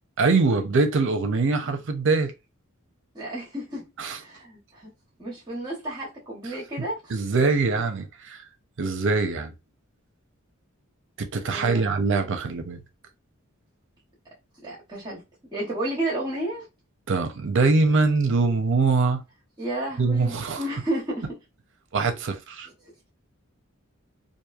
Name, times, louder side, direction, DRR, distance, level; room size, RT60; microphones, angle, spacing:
voice 1, 0.2-2.3 4.0-4.2 6.8-8.4 8.8-9.5 11.2-12.8 17.1-19.2 20.0-20.6 21.9-22.7, right 4 dB, 60° right, 0.6 m, -23 dB
voice 2, 3.1-3.9 4.2-4.9 5.2-7.0 11.5-11.9 14.6-15.2 15.5-16.7 19.6-21.4, right 1 dB, 20° right, 1.0 m, -31 dB
3.0 x 2.5 x 2.3 m
head